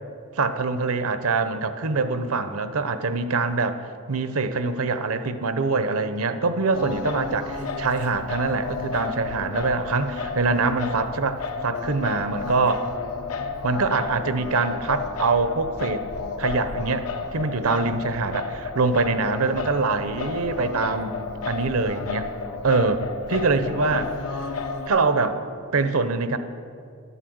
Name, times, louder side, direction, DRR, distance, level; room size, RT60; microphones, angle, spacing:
voice 1, 0.3-3.8 4.1-12.9 13.6-16.1 16.4-21.2 21.4-22.3 22.6-23.0 23.3-24.1 24.9-25.4 25.7-26.4, right 4 dB, 65° right, 10 dB, 0.8 m, -24 dB
Singing, 6.7-24.9, left 4 dB, 85° left, 1.0 m, -32 dB
11.5 x 8.2 x 7.8 m, 2.4 s
head